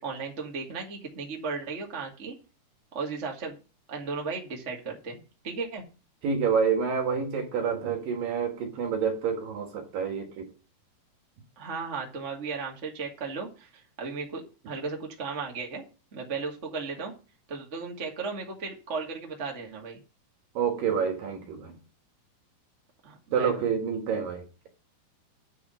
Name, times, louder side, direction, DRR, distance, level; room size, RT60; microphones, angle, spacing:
voice 1, 0.0-2.3 2.9-3.6 3.9-5.2 5.4-5.8 11.5-15.8 16.1-17.1 17.5-20.0 23.0-23.6, right 4 dB, 30° right, 1.5 m, -35 dB
voice 2, 6.2-10.5 20.5-21.8 23.3-24.7, right 6 dB, 65° right, 2.9 m, -28 dB
9.4 x 4.9 x 7.1 m
omnidirectional pair, 4.8 m